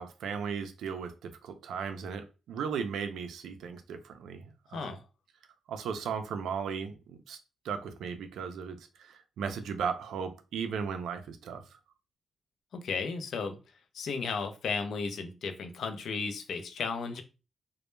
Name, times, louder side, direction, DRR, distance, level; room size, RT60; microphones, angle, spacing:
voice 1, 0.0-4.9 5.7-7.4 7.6-11.6, right 6 dB, 90° right, 0.4 m, -36 dB
voice 2, 4.7-5.0 12.7-13.6 13.9-17.2, left 5 dB, 65° left, 0.4 m, -34 dB
2.1 x 2.1 x 3.0 m
cardioid pair, 140°, 0 cm